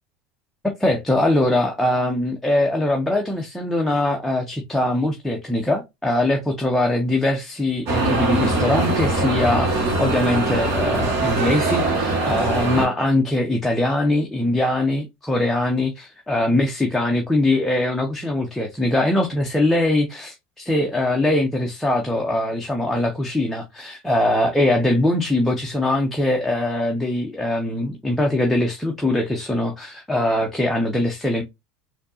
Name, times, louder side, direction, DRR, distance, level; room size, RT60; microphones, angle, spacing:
voice 1, 0.6-31.4, left 1 dB, 5° left, 0.7 m, -22 dB
sound 1, 7.9-12.8, right 2 dB, 45° right, 1.6 m, -22 dB
4.3 x 2.7 x 2.7 m
supercardioid pair, 125°, 7 cm